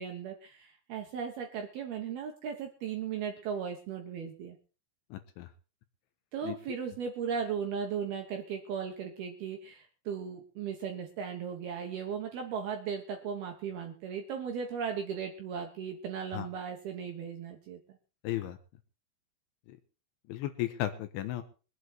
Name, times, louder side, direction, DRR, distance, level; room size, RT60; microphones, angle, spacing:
voice 1, 0.0-4.6 6.3-17.8, right 7 dB, 65° right, 3 dB, 2.6 m, -37 dB
voice 2, 5.1-5.5 6.4-6.6 16.3-16.5 18.2-18.6 19.7-19.8 20.3-21.4, left 14 dB, 75° left, 9 dB, 3.2 m, -35 dB
23.5 x 8.2 x 4.5 m, 0.35 s
omnidirectional pair, 6.0 m